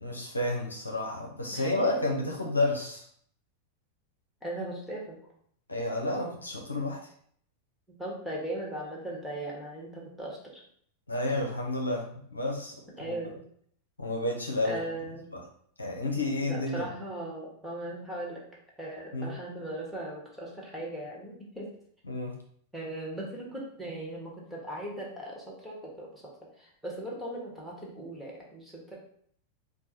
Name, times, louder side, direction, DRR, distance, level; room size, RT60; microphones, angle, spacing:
voice 1, 0.0-3.1 5.7-7.0 11.1-13.2 14.0-14.8 15.3-15.4 15.8-16.9 19.1-19.3 22.1-22.3, left 2 dB, 80° left, 1 dB, 0.7 m, -30 dB
voice 2, 4.4-5.3 7.9-10.6 13.0-13.4 14.6-15.3 16.5-18.4 18.8-21.7 22.7-26.3 26.6-29.0, right 1 dB, ahead, -4 dB, 1.3 m, -38 dB
4.6 x 2.2 x 4.2 m, 0.63 s
figure-of-eight pair, 90°, 0 cm